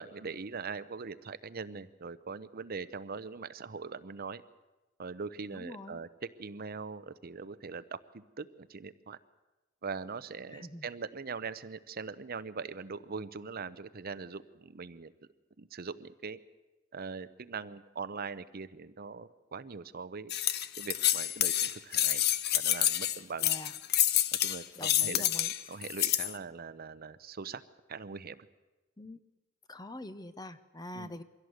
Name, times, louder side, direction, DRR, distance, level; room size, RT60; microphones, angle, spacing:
voice 1, 0.0-4.4 5.0-6.1 6.4-9.2 9.8-15.1 15.6-16.4 16.9-20.3 20.8-22.2 22.5-23.5 24.4-25.3 25.7-27.6 27.9-28.5 30.9-31.1, right 5 dB, 50° right, 14 dB, 0.7 m, -41 dB
voice 2, 5.5-6.0 10.5-10.9 23.4-23.7 24.8-25.5 29.0-29.2 29.7-31.2, left 1 dB, 20° left, 12 dB, 0.8 m, -44 dB
sound 1, 20.3-26.3, left 12 dB, 50° left, 0.7 m, -28 dB
23.0 x 16.5 x 7.9 m, 1.1 s
head